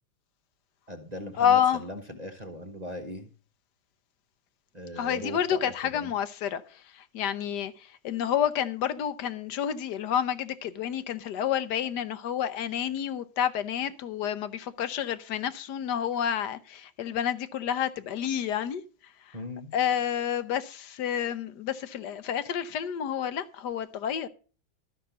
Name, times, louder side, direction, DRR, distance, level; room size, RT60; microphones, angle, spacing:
voice 1, 0.9-3.3 4.7-6.1 19.3-19.7, equal, 30° right, 0.8 m, -39 dB
voice 2, 1.4-1.8 5.0-18.8 19.3-19.4 19.7-24.3, left 9 dB, 65° left, 1.2 m, -29 dB
12.5 x 5.9 x 6.8 m
omnidirectional pair, 2.2 m